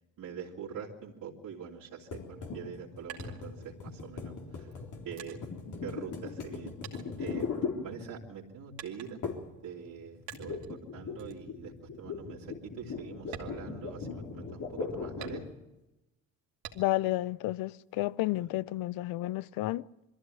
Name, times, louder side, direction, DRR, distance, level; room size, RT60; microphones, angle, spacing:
voice 1, 0.2-4.8 5.0-5.4 5.8-6.7 7.2-7.5 7.8-9.2 9.6-15.5 18.4-18.5, right 7 dB, 60° right, 3.1 m, -44 dB
sound 1, 2.1-8.4 9.2-9.6 9.9-15.6, left 5 dB, 55° left, 3.7 m, -39 dB
sound 2, 2.6-4.1 4.7-6.5 6.8-8.0 8.8-9.4 10.3-10.8 11.2-11.5 11.9-12.0 12.4-12.6 13.2-14.4 15.2-15.9 16.6-17.2 17.6-18.4, right 9 dB, 85° right, 2.6 m, -48 dB
voice 2, 16.7-19.9, left 18 dB, 75° left, 0.7 m, -31 dB
22.5 x 15.0 x 9.2 m
supercardioid pair, 65°, 36 cm